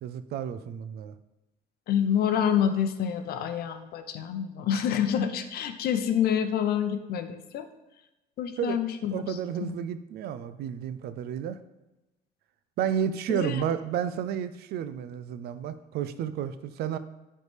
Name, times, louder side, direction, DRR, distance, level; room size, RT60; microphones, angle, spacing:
voice 1, 0.0-1.1 8.6-8.8 9.1-11.6 12.8-17.0, right 9 dB, 70° right, 13 dB, 0.4 m, -31 dB
voice 2, 1.9-7.7 8.4-9.8 13.3-13.6, left 8 dB, 65° left, 8 dB, 0.7 m, -27 dB
9.3 x 3.3 x 3.3 m, 1.0 s
cardioid pair, 110°, 17 cm